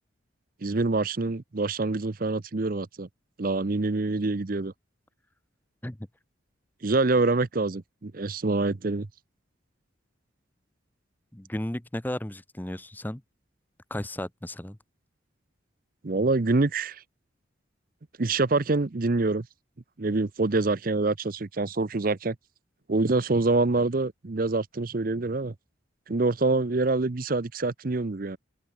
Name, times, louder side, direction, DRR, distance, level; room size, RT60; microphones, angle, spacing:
voice 1, 0.6-3.1 3.4-4.7 6.8-9.1 16.0-17.0 18.2-19.5 20.0-22.4 22.9-25.5 26.1-28.4, right 3 dB, 45° right, 0.7 m, -26 dB
voice 2, 11.3-13.2 13.9-14.8, left 1 dB, 10° left, 0.7 m, -34 dB
open air
head